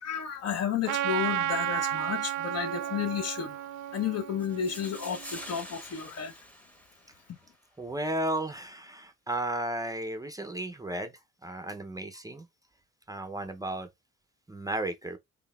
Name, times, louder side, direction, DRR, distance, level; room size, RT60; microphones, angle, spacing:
voice 1, 0.0-3.6 3.9-6.3, left 8 dB, 55° left, 0.7 m, -32 dB
Trumpet, 0.8-5.5, right 12 dB, 80° right, 0.5 m, -33 dB
sound 1, 4.4-7.4, equal, 5° left, 0.8 m, -46 dB
voice 2, 7.8-11.1 11.4-12.5 13.1-13.9 14.5-15.2, right 1 dB, 10° right, 0.5 m, -34 dB
3.9 x 3.4 x 2.2 m
cardioid pair, 90°, 30 cm